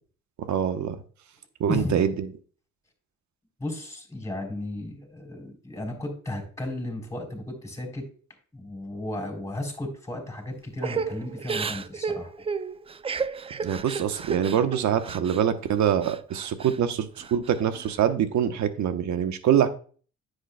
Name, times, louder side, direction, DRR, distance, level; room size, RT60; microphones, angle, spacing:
voice 1, 0.4-1.0 1.6-2.3 13.6-19.7, right 9 dB, 70° right, 9 dB, 1.0 m, -24 dB
voice 2, 3.6-8.1 8.5-12.3, left 1 dB, 10° left, 0 dB, 3.7 m, -34 dB
Crying sobbing / Breathing, 10.8-15.4 15.8-16.8 17.2-17.9, right 5 dB, 20° right, 0.3 m, -33 dB
9.9 x 8.0 x 2.2 m, 0.41 s
cardioid pair, 90°, 30 cm